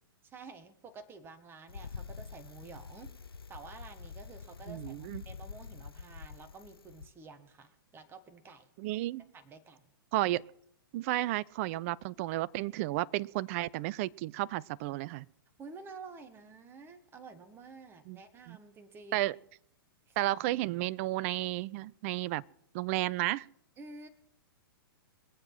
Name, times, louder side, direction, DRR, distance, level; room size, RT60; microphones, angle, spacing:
voice 1, 0.2-3.1 3.5-8.7 9.3-9.9 15.6-19.3 20.1-20.2 23.8-24.1, right 4 dB, 20° right, 1.5 m, -50 dB
Bicycle, 1.7-7.1, left 5 dB, 80° left, 0.6 m, -46 dB
voice 2, 4.7-5.2 8.8-9.2 10.1-10.4 10.9-15.3 18.1-18.2 18.5-18.6 19.1-19.4 20.2-22.4 22.7-23.5, right 17 dB, 35° right, 0.5 m, -32 dB
23.0 x 7.9 x 5.9 m
figure-of-eight pair, 110°, 12 cm